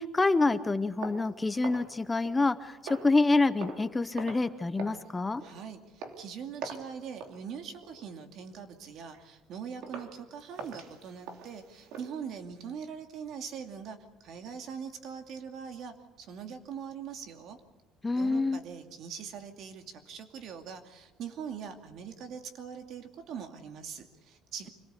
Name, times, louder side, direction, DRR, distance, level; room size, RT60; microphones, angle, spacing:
voice 1, 0.0-5.4 18.0-18.6, left 3 dB, 10° left, 12 dB, 0.7 m, -27 dB
sound 1, 1.0-2.5 2.8-3.2 3.6-3.9 4.2-4.5 4.8-5.0 5.4-5.6 6.0-6.2 6.6-6.9 7.2-7.4 7.8-8.1 8.5-8.6 9.1-9.2 9.8-10.1 10.5-12.1, right 4 dB, 70° right, 2.9 m, -43 dB
voice 2, 5.4-17.6 18.1-24.7, right 7 dB, 50° right, 6 dB, 2.5 m, -42 dB
26.0 x 18.5 x 8.3 m, 1.1 s
cardioid pair, 170°, 0 cm